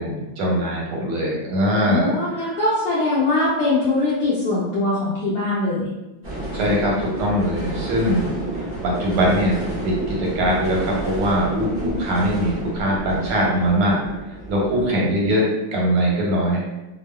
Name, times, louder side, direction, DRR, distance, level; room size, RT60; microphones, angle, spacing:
voice 1, 0.0-2.5 6.5-14.0 14.5-15.4 15.7-16.6, equal, 85° right, -2 dB, 1.6 m, -22 dB
voice 2, 1.9-5.9 8.1-8.2 11.8-12.0 14.7-15.1, left 2 dB, 75° left, -8 dB, 0.9 m, -22 dB
sound 1, 6.2-14.9, right 1 dB, 70° right, 0.5 m, -30 dB
3.5 x 2.1 x 2.2 m, 1.0 s
omnidirectional pair, 2.4 m